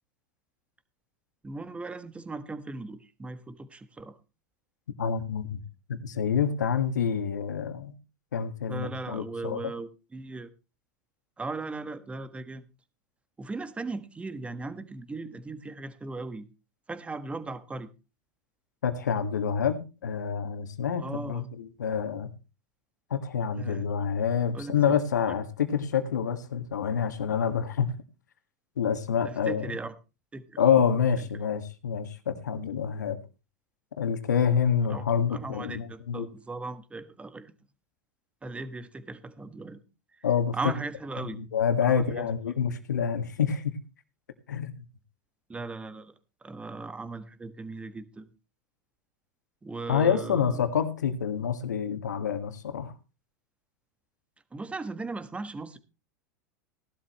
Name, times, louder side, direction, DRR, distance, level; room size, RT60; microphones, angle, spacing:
voice 1, 1.4-4.2 8.7-10.5 11.4-12.6 13.4-16.4 16.9-17.9 21.0-21.5 23.6-23.9 24.5-24.7 29.2-29.9 30.3-30.6 34.9-35.0 35.3-37.5 38.4-39.8 40.5-41.4 41.8-42.3 45.5-46.1 46.4-48.2 49.6-50.6 54.5-55.8, right 3 dB, 15° right, 11 dB, 1.5 m, -37 dB
voice 2, 5.0-5.6 5.9-8.0 8.3-9.7 18.8-22.3 23.1-27.9 28.8-29.7 30.6-33.2 34.0-36.3 40.2-40.5 41.2-43.8 44.5-44.7 49.9-52.9, left 7 dB, 80° left, 9 dB, 1.8 m, -27 dB
17.0 x 12.0 x 3.1 m, 0.31 s
hypercardioid pair, 100°, 9 cm